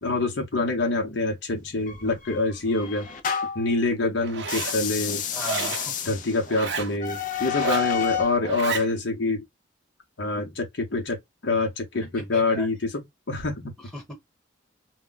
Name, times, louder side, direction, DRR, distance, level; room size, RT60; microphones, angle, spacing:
voice 1, 0.0-3.1 3.5-5.2 6.1-9.4 10.2-11.2 11.4-12.8 13.3-13.7, left 2 dB, 65° left, 0.8 m, -26 dB
sound 1, 1.9-3.7 4.4-8.4, left 9 dB, 40° left, 0.4 m, -30 dB
Zipper (clothing), 4.2-4.8 5.4-5.9 6.5-6.9 7.5-7.9 8.4-8.9, right 5 dB, 65° right, 0.6 m, -31 dB
voice 2, 5.3-6.1 12.2-12.7 13.8-14.1, left 1 dB, 5° left, 1.2 m, -37 dB
2.2 x 2.2 x 3.8 m
head